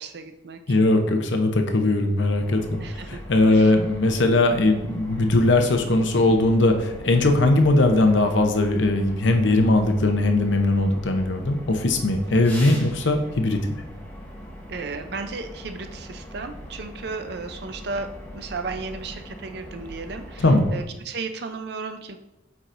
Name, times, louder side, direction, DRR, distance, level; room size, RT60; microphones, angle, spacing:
voice 1, 0.0-0.8 2.8-3.2 3.5-3.7 14.7-18.1 18.3-20.4 20.7-22.2, right 4 dB, 55° right, 7 dB, 0.5 m, -34 dB
voice 2, 0.7-2.8 3.1-13.6 20.4-20.8, left 2 dB, 70° left, 5 dB, 0.7 m, -20 dB
sound 1, 2.3-20.8, equal, 10° left, 0.9 m, -41 dB
8.3 x 4.8 x 2.6 m, 0.93 s
head